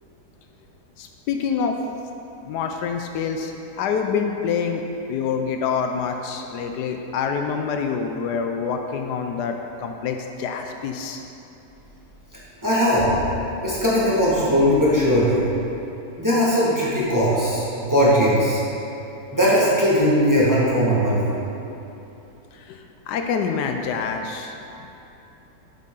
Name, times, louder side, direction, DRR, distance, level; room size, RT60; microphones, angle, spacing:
voice 1, 1.0-1.7 2.5-4.8 5.1-11.2 14.0-14.1 22.5-24.5, left 6 dB, 80° left, 4 dB, 1.1 m, -26 dB
voice 2, 12.6-13.1 13.6-15.4 16.2-18.6 19.3-21.3, equal, 10° right, -8 dB, 1.4 m, -19 dB
8.3 x 7.4 x 3.8 m, 3.0 s
omnidirectional pair, 1.8 m